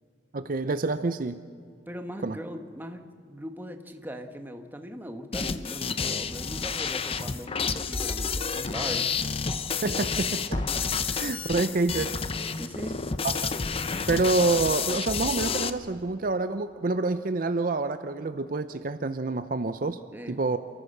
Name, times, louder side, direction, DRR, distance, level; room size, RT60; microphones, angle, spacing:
voice 1, 0.3-1.4 2.2-2.4 9.8-10.6 11.1-12.1 13.2-13.5 14.1-20.0 20.3-20.6, right 3 dB, 50° right, 11 dB, 0.5 m, -27 dB
voice 2, 1.9-3.0 3.3-9.0 12.6-13.0 20.1-20.4, equal, 10° right, 5 dB, 1.2 m, -39 dB
sound 1, 5.3-15.7, left 5 dB, 30° left, 0.7 m, -30 dB
28.0 x 14.0 x 6.6 m, 2.3 s
head